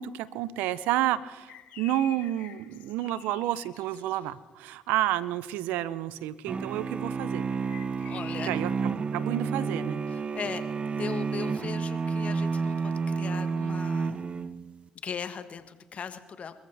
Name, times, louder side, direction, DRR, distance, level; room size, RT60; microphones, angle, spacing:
voice 1, 0.0-7.5 8.4-10.0, right 13 dB, 80° right, 17 dB, 0.6 m, -30 dB
sound 1, 1.5-4.2 7.5-8.6, left 11 dB, 70° left, 1.0 m, -48 dB
sound 2, 6.5-14.8, right 5 dB, 40° right, 0.7 m, -30 dB
voice 2, 8.1-8.5 10.1-10.6 11.0-14.2 15.0-16.5, left 6 dB, 50° left, 10 dB, 1.3 m, -38 dB
26.5 x 14.5 x 3.4 m, 1.2 s
hypercardioid pair, 55°, 3 cm